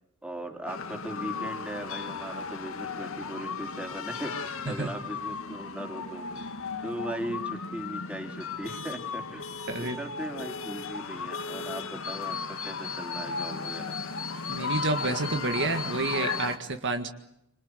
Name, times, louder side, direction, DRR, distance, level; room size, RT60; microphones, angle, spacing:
voice 1, 0.2-6.5 6.8-9.5 9.8-14.0, right 1 dB, 5° right, 3 dB, 4.0 m, -38 dB
sound 1, 0.7-16.6, left 5 dB, 65° left, 1.8 m, -35 dB
voice 2, 9.7-10.0 14.5-17.1, right 3 dB, 55° right, 6 dB, 1.8 m, -29 dB
27.0 x 26.0 x 8.3 m, 0.81 s
head